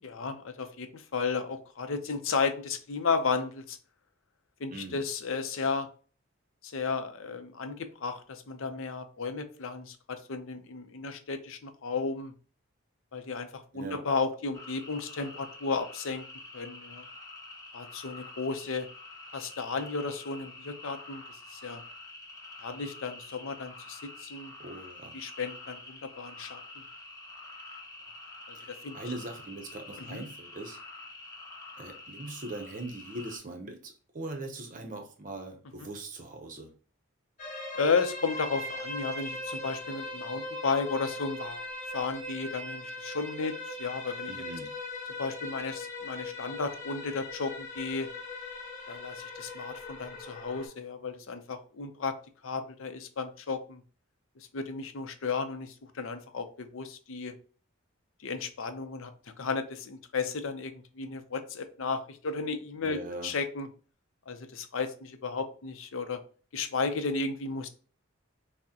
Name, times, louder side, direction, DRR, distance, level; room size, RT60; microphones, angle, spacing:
voice 1, 0.0-3.8 4.6-5.9 6.6-7.8 8.0-12.3 13.1-16.2 16.5-17.0 17.7-18.9 19.3-21.2 21.5-21.8 22.6-24.5 25.1-26.6 28.5-29.0 30.0-30.2 37.7-41.6 41.9-44.3 45.2-48.1 48.9-52.1 52.4-53.8 54.5-57.4 58.2-59.1 59.4-63.7 64.3-66.2 66.5-67.7, left 4 dB, 70° left, 0.5 m, -33 dB
voice 2, 4.7-5.0 13.7-14.1 24.6-25.2 28.5-30.8 31.8-36.7 44.3-44.7 62.8-63.3, right 2 dB, 40° right, 0.6 m, -41 dB
sound 1, 14.5-33.4, left 2 dB, 15° left, 0.6 m, -47 dB
sound 2, 37.4-50.7, left 2 dB, 35° left, 1.1 m, -40 dB
5.8 x 2.1 x 2.8 m
head